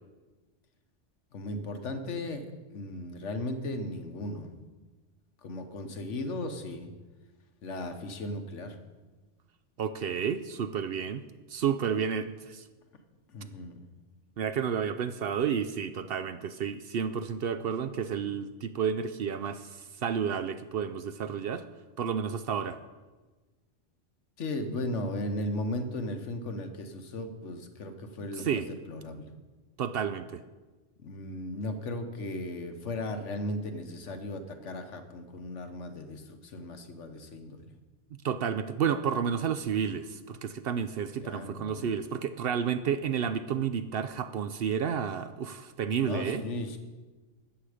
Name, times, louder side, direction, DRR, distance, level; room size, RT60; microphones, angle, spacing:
voice 1, 1.3-2.5 2.7-4.5 5.4-6.9 7.6-8.8 13.3-13.8 24.4-28.6 28.9-29.3 31.0-37.7 41.2-41.9 43.3-43.5 46.0-46.8, left 1 dB, 80° left, 7 dB, 1.4 m, -36 dB
voice 2, 9.8-11.2 11.5-12.7 14.4-21.6 22.0-22.8 28.3-28.7 29.8-30.4 38.2-46.4, right 7 dB, 60° right, 11 dB, 0.7 m, -31 dB
13.0 x 8.2 x 5.0 m, 1.3 s
omnidirectional pair, 1.2 m